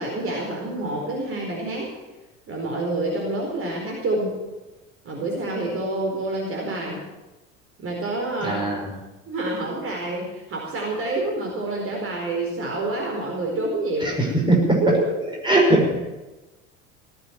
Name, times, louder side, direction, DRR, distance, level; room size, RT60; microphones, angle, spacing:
voice 1, 0.0-1.9 2.5-4.4 5.0-7.0 7.8-8.6 9.3-14.2 14.8-14.9, right 2 dB, 35° right, -1 dB, 4.5 m, -27 dB
voice 2, 8.4-8.9 14.0-14.8 15.4-15.9, right 2 dB, 10° right, 0 dB, 5.6 m, -20 dB
18.0 x 8.6 x 9.2 m, 1.1 s
figure-of-eight pair, 75°, 38 cm